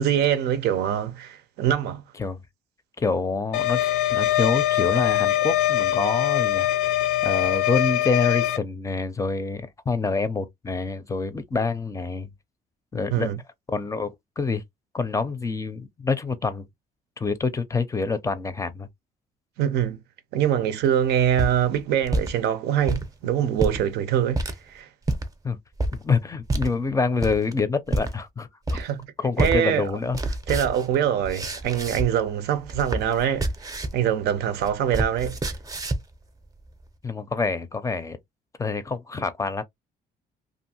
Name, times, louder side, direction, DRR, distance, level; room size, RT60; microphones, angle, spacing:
voice 1, 0.0-2.0 13.1-13.4 19.6-20.0 20.3-24.9 28.7-29.0 29.4-29.9 30.5-33.5 33.9-35.4, right 10 dB, 75° right, 0.6 m, -24 dB
voice 2, 3.0-7.0 7.2-12.3 12.9-13.3 13.7-14.6 14.9-16.7 17.2-18.9 25.4-25.6 26.0-28.8 29.2-30.2 37.0-38.2 38.6-39.6, left 4 dB, 20° left, 0.5 m, -27 dB
sound 1, 3.5-8.6, left 14 dB, 85° left, 0.7 m, -23 dB
sound 2, 21.1-22.3 22.8-23.1 23.5-23.8 24.3-24.6 25.0-25.3 25.8-26.0 26.5-26.7 27.2-27.5 27.9-28.1 28.7-29.0 29.4-29.6 29.9-32.3 32.6-34.0 34.3-36.1, right 2 dB, 20° right, 0.6 m, -28 dB
2.6 x 2.5 x 2.8 m
cardioid pair, 110°, 17 cm